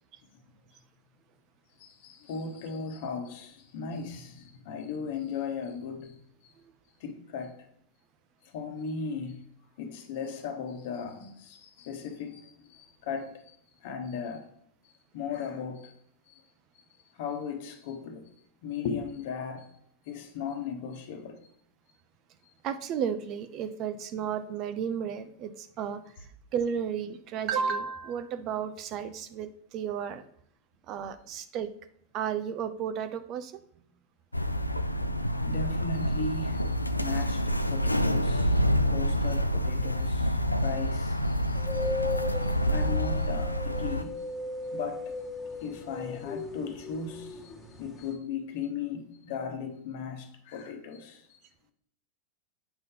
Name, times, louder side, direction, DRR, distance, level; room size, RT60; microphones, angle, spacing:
voice 1, 1.8-6.2 6.4-6.5 7.0-7.7 8.5-9.4 9.8-13.6 13.8-14.5 15.1-15.9 16.3-16.4 17.2-18.3 18.6-19.7 20.1-21.4 35.3-44.1 44.7-45.1 45.6-51.4, left 5 dB, 50° left, 1.2 m, -37 dB
voice 2, 22.6-30.2 30.9-31.7 32.1-33.6, right 7 dB, 35° right, 0.6 m, -33 dB
sound 1, 34.3-44.0, equal, 85° left, 0.4 m, -27 dB
sound 2, 41.5-48.1, left 3 dB, 15° left, 1.6 m, -37 dB
8.0 x 5.5 x 3.7 m
figure-of-eight pair, 90°, 0 cm